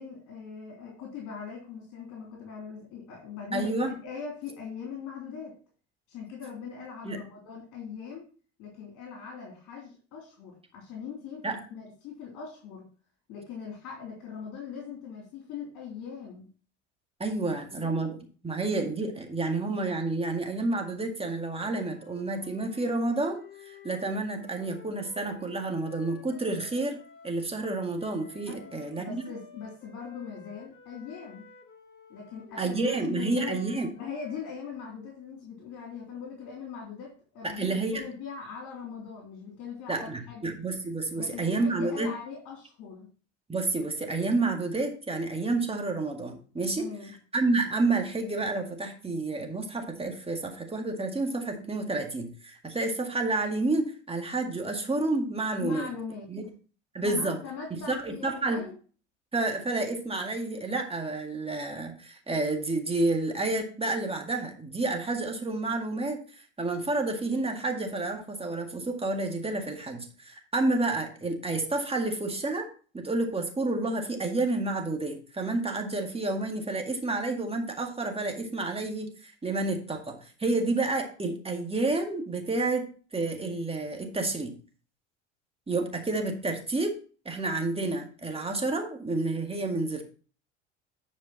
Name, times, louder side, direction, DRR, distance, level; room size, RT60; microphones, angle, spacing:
voice 1, 0.0-5.5 6.1-8.3 8.6-12.8 13.3-16.5 17.5-18.0 28.5-31.5 32.1-33.6 33.9-40.5 41.2-43.1 46.8-47.1 55.6-56.3 57.0-58.7, left 6 dB, 60° left, -2 dB, 3.4 m, -41 dB
voice 2, 3.5-3.9 7.0-7.2 11.4-11.6 17.2-18.2 18.4-27.0 27.2-29.2 32.6-33.9 37.4-38.0 39.9-42.1 43.5-46.9 47.3-55.9 56.3-56.4 56.9-57.4 57.9-58.7 59.3-72.7 72.9-84.5 85.7-86.9 87.3-90.0, right 2 dB, 15° right, 3 dB, 2.0 m, -30 dB
sound 1, 21.3-27.4 28.0-34.6, left 4 dB, 30° left, 5.2 m, -53 dB
9.9 x 5.2 x 4.0 m, 0.38 s
hypercardioid pair, 75°, 35 cm